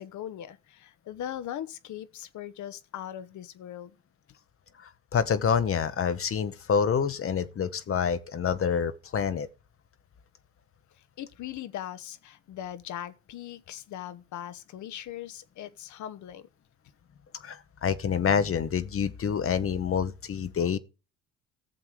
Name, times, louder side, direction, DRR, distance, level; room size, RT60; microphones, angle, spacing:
voice 1, 0.0-3.9 11.2-16.5 20.6-20.7, left 11 dB, 55° left, 1.1 m, -40 dB
voice 2, 5.1-9.5 17.4-20.8, left 7 dB, 40° left, 1.0 m, -27 dB
14.5 x 7.1 x 4.9 m
hypercardioid pair, 60°, 35 cm